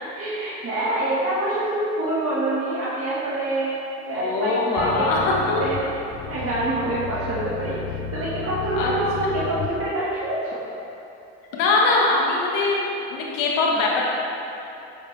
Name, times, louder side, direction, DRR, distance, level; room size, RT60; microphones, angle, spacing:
voice 1, 0.0-5.3 5.6-5.8 6.3-10.6, right 1 dB, 45° right, -8 dB, 1.7 m, -26 dB
voice 2, 4.1-5.6 8.8-8.9 9.3-9.4 11.5-12.8 13.1-14.0, left 3 dB, 85° left, -3 dB, 1.6 m, -22 dB
sound 1, 4.8-9.9, left 7 dB, 45° left, 0.6 m, -34 dB
8.7 x 7.4 x 3.3 m, 2.8 s
supercardioid pair, 75°, 32 cm